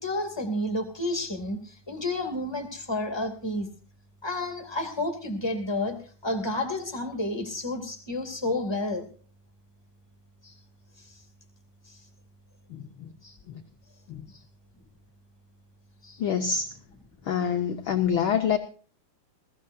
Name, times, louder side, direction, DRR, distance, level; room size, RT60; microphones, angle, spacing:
voice 1, 0.0-3.7 4.2-6.0 6.2-9.1 10.4-10.5 11.0-11.2 11.9-12.0 13.2-13.4 16.0-16.2, left 2 dB, 10° left, 5 dB, 2.0 m, -30 dB
voice 2, 12.7-13.1 13.5-13.6 14.1-14.2 16.2-16.7 17.2-18.6, left 7 dB, 80° left, 5 dB, 1.1 m, -26 dB
21.0 x 15.0 x 2.6 m, 0.41 s
omnidirectional pair, 3.5 m